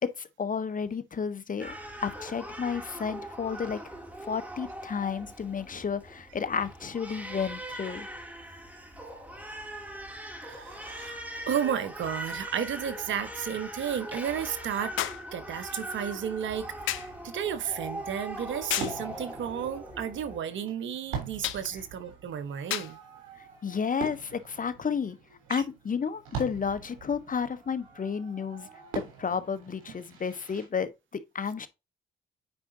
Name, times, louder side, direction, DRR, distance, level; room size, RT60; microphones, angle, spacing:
voice 1, 0.0-3.8 4.2-8.1 23.4-25.2 25.5-28.7 28.9-31.7, left 6 dB, 40° left, 1.2 m, -32 dB
Crying sobbing, 1.6-20.4, equal, 10° right, 3.6 m, -41 dB
voice 2, 10.5-15.0 15.3-23.0 25.5-25.6, right 8 dB, 75° right, 1.2 m, -33 dB
sound 1, 11.2-11.3 15.0-15.3 16.9-17.2 18.7-19.0 21.4-21.7 22.7-23.0 24.1-24.2, left 13 dB, 80° left, 0.7 m, -32 dB
Fireworks, 16.4-30.7, right 4 dB, 90° right, 3.3 m, -43 dB
9.3 x 5.0 x 2.7 m
supercardioid pair, 55°, 20 cm